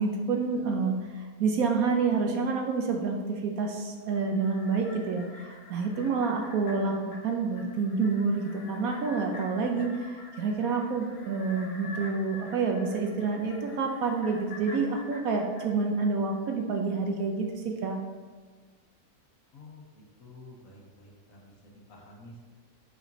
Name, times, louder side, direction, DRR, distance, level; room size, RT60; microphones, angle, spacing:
voice 1, 0.0-18.0, right 4 dB, 65° right, 3 dB, 1.0 m, -28 dB
sound 1, 4.0-16.5 16.9-17.0, left 2 dB, 80° left, 1.6 m, -48 dB
voice 2, 19.5-22.4, left 2 dB, 55° left, -2 dB, 1.5 m, -50 dB
8.8 x 5.1 x 2.7 m, 1.5 s
omnidirectional pair, 1.8 m